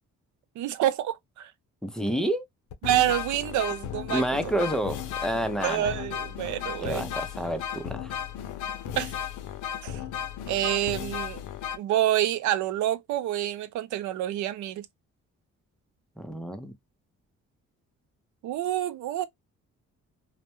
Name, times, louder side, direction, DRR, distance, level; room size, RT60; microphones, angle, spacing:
voice 1, 0.6-1.5 2.8-4.2 5.6-7.0 9.0-9.1 9.8-10.0 10.5-11.4 11.8-14.9 18.4-19.3, right 13 dB, 75° right, 0.5 m, -27 dB
voice 2, 1.8-2.4 4.1-6.0 6.8-8.2 16.2-16.7, right 1 dB, ahead, 0.4 m, -29 dB
sound 1, 2.1-2.2 2.7-11.8, left 9 dB, 80° left, 0.5 m, -35 dB
2.1 x 2.1 x 2.9 m
cardioid pair, 90°, 30 cm